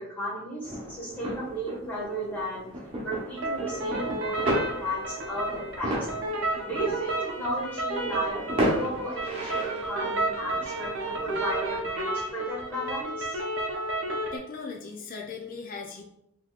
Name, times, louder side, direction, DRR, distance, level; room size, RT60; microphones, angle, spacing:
voice 1, 0.0-2.6 3.0-6.1 6.7-13.4, right 1 dB, 10° left, -7 dB, 1.4 m, -34 dB
sound 1, 0.6-11.8, equal, 25° right, 0.9 m, -34 dB
sound 2, 3.4-14.4, right 2 dB, 60° right, 0.7 m, -32 dB
voice 2, 14.3-16.0, left 4 dB, 40° left, 1 dB, 0.3 m, -38 dB
4.0 x 2.8 x 2.4 m, 0.81 s
head